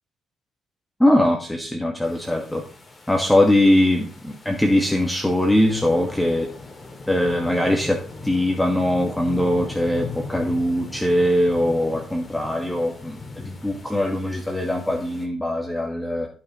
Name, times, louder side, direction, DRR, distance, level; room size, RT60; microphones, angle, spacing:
voice 1, 1.0-2.6 3.1-6.5 7.1-16.3, left 1 dB, 5° left, 1 dB, 1.4 m, -21 dB
sound 1, 2.0-15.3, left 3 dB, 25° left, 2.2 m, -39 dB
15.5 x 5.8 x 3.0 m, 0.43 s
cardioid pair, 90°, 0 cm